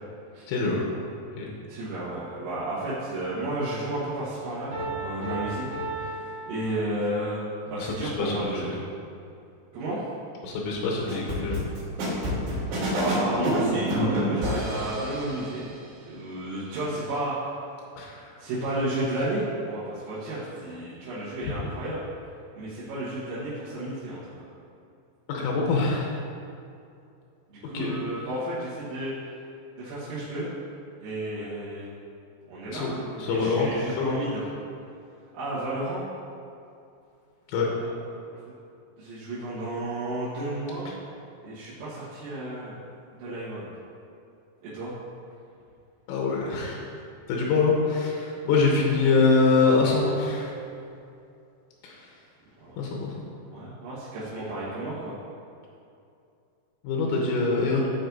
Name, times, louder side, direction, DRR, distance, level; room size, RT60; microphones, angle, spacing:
voice 1, 0.5-0.8 1.4-1.5 7.8-8.6 10.4-11.6 18.0-18.3 21.4-21.5 25.3-26.1 27.7-27.9 32.7-32.9 33.2-33.7 34.0-34.1 37.5-37.7 46.1-46.8 47.3-50.5 51.8-51.9 52.8-53.3 56.8-57.9, left 4 dB, 85° left, -2 dB, 3.3 m, -24 dB
voice 2, 1.7-5.7 5.9-8.8 9.7-10.0 13.0-15.6 16.1-17.6 18.4-22.0 22.5-24.4 27.5-29.1 29.8-30.5 31.0-31.9 32.5-34.4 35.3-36.0 37.7-37.8 39.0-40.9 41.4-42.8 43.1-43.7 44.6-45.0 52.6-52.8 53.5-55.2, right 1 dB, 85° right, -12 dB, 4.0 m, -32 dB
Piano, 4.7-7.3, right 2 dB, 55° right, 1.7 m, -35 dB
sound 1, 11.1-15.4, equal, 70° right, 4.3 m, -28 dB
13.5 x 4.6 x 2.6 m, 2.6 s
omnidirectional pair, 5.8 m